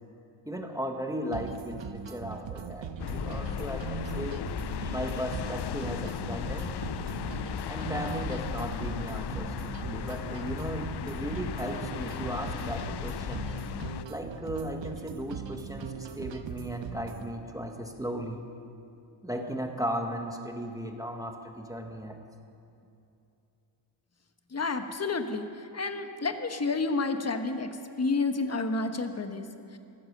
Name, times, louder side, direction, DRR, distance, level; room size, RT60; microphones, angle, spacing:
voice 1, 0.4-4.4 4.7-6.7 7.7-13.5 14.1-18.5 19.2-22.2, equal, 10° right, 3 dB, 1.3 m, -36 dB
sound 1, 1.3-17.3, right 7 dB, 75° right, 0.9 m, -40 dB
sound 2, 3.0-14.1, left 10 dB, 60° left, 0.5 m, -36 dB
voice 2, 24.5-29.5 29.7-29.8, left 3 dB, 35° left, 7 dB, 1.2 m, -30 dB
14.5 x 14.5 x 6.6 m, 2.7 s
wide cardioid pair, 95°, 45 cm